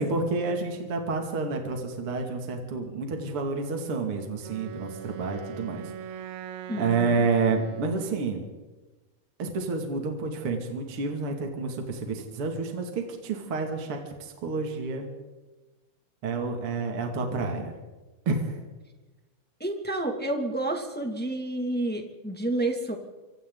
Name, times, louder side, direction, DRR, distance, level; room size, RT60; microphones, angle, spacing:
voice 1, 0.0-6.2 6.7-8.5 9.4-15.1 16.2-17.7 18.3-18.6, right 4 dB, 40° right, 2 dB, 3.0 m, -29 dB
Wind instrument woodwind instrument, 4.4-8.4, right 9 dB, 90° right, 3.2 m, -41 dB
voice 2, 6.7-7.3 19.6-23.0, right 1 dB, 5° left, 3 dB, 1.5 m, -30 dB
26.5 x 26.0 x 4.0 m, 1.2 s
omnidirectional pair, 4.3 m